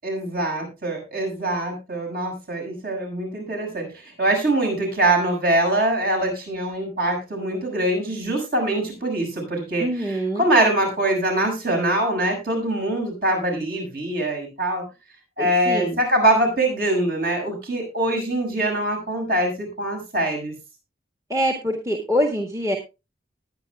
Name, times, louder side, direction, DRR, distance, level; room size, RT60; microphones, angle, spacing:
voice 1, 0.0-14.8 15.4-20.5, right 1 dB, 50° right, 2 dB, 6.8 m, -23 dB
voice 2, 9.8-10.4 15.4-16.0 21.3-22.8, equal, 15° right, 4 dB, 1.6 m, -24 dB
20.0 x 9.8 x 2.3 m, 0.27 s
head